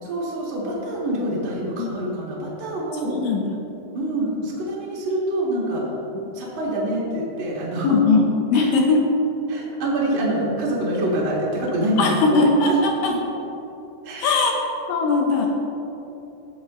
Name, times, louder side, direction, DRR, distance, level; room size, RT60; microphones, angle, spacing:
voice 1, 0.0-3.2 3.9-5.8 6.4-8.0 9.5-12.4 12.7-12.8 14.1-14.4, right 1 dB, 40° right, -6 dB, 1.9 m, -25 dB
voice 2, 3.0-3.5 7.8-9.1 11.8-13.1 14.2-14.5 14.9-15.5, left 3 dB, 75° left, 1 dB, 2.1 m, -20 dB
17.0 x 6.3 x 3.1 m, 3.0 s
omnidirectional pair, 4.8 m